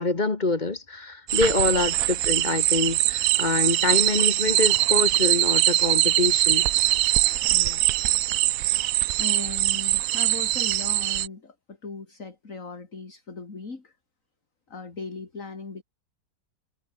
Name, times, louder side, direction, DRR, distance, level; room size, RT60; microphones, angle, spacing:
voice 1, 0.0-6.7, left 3 dB, 25° left, 1.5 m, -25 dB
sound 1, 1.3-11.3, right 15 dB, 75° right, 0.8 m, -22 dB
sound 2, 4.2-4.3 5.0-5.6 6.1-6.3 7.1-7.2 8.1-8.3 9.1-9.2 10.0-10.1, right 2 dB, 50° right, 6.1 m, -52 dB
voice 2, 7.5-8.2 8.6-8.9 9.2-14.0 14.7-15.8, left 4 dB, 45° left, 3.5 m, -38 dB
omnidirectional pair, 1.9 m